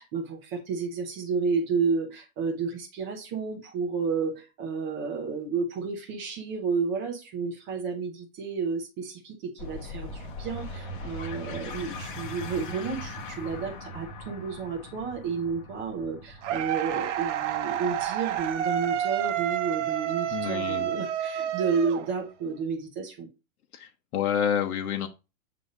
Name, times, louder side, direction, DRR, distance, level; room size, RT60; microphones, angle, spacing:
voice 1, 0.0-23.3, right 5 dB, 10° right, 2 dB, 0.5 m, -31 dB
sound 1, 9.6-20.7, left 1 dB, 35° left, 1.2 m, -41 dB
sound 2, 16.4-22.5, right 11 dB, 55° right, 0.9 m, -29 dB
voice 2, 20.3-20.9 23.7-25.1, left 8 dB, 85° left, 4 dB, 1.1 m, -28 dB
8.0 x 2.7 x 4.9 m, 0.27 s
supercardioid pair, 175°, 43 cm